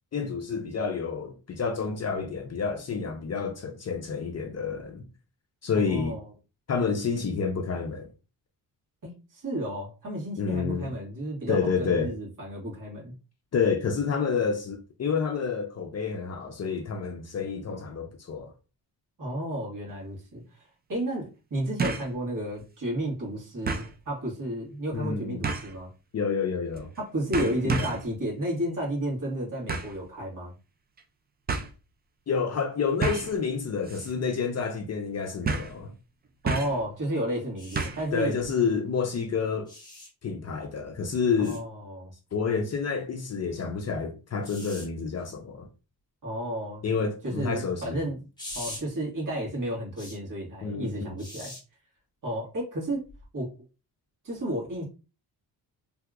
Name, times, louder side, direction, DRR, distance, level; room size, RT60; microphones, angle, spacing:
voice 1, 0.1-5.1 5.6-6.2 6.7-8.1 10.4-10.9 11.5-12.1 13.5-18.5 24.9-25.4 26.1-26.9 27.4-28.0 32.3-35.9 38.1-39.7 40.2-41.6 42.3-45.7 46.8-48.0 50.6-51.2, left 5 dB, 40° left, 0.5 m, -29 dB
voice 2, 5.7-6.2 9.0-13.1 19.2-20.6 20.9-25.9 27.0-30.5 36.4-38.3 41.4-42.1 46.2-46.8 47.2-48.2 48.5-51.5 52.2-53.1 53.3-53.5 54.2-54.8, right 1 dB, 50° right, 1.9 m, -32 dB
sound 1, 19.9-20.0 21.8-22.1 22.6-22.7 23.7-23.9 25.4-25.8 26.7-27.0 27.3-28.1 29.7-30.0 31.0-31.1 31.5-31.7 33.0-33.4 33.9-34.1 34.4-34.5 35.4-35.8 36.5-36.8 37.8-38.1 38.4-38.5, right 4 dB, 25° right, 0.4 m, -30 dB
sound 2, 37.6-37.9 39.7-40.1 41.4-41.6 44.4-44.9 48.4-48.8 50.0-50.2 51.2-51.6 53.1-53.3, left 1 dB, 10° left, 1.1 m, -41 dB
3.4 x 2.8 x 2.4 m
cardioid pair, 125°, 41 cm